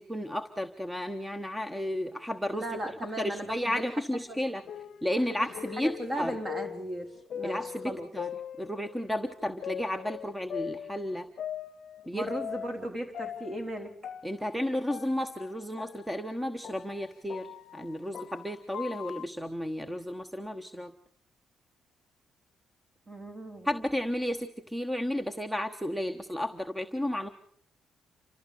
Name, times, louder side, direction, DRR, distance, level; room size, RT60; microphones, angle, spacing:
voice 1, 0.0-2.6 3.2-4.6 5.0-6.4 7.4-8.3 8.6-11.3 12.1-12.3 14.2-20.9 23.6-27.3, left 1 dB, 5° right, 9 dB, 1.2 m, -33 dB
voice 2, 2.5-4.4 5.3-5.5 5.8-8.1 12.1-13.9 23.1-23.7, right 1 dB, 35° right, 5 dB, 4.0 m, -37 dB
sound 1, 4.3-9.1 9.6-12.9 13.1-19.3, left 9 dB, 60° left, 0.7 m, -41 dB
29.0 x 14.0 x 6.8 m, 0.65 s
cardioid pair, 90°, 0 cm